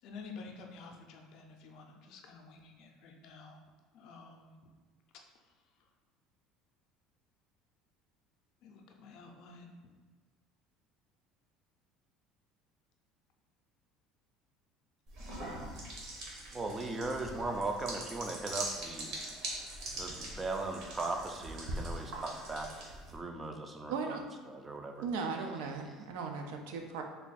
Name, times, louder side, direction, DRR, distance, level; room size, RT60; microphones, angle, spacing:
voice 1, 0.0-3.6 3.9-4.5 8.6-9.7, left 4 dB, 55° left, 3 dB, 0.5 m, -50 dB
sound 1, 15.1-23.2, right 1 dB, 60° right, 1.0 m, -42 dB
voice 2, 16.5-19.1 20.0-22.7 23.1-24.2 24.5-25.1, right 3 dB, 15° right, 4 dB, 0.3 m, -38 dB
voice 3, 23.9-24.2 25.0-27.0, right 5 dB, 90° right, 4 dB, 0.4 m, -37 dB
3.4 x 2.3 x 4.0 m, 1.5 s
cardioid pair, 160°, 0 cm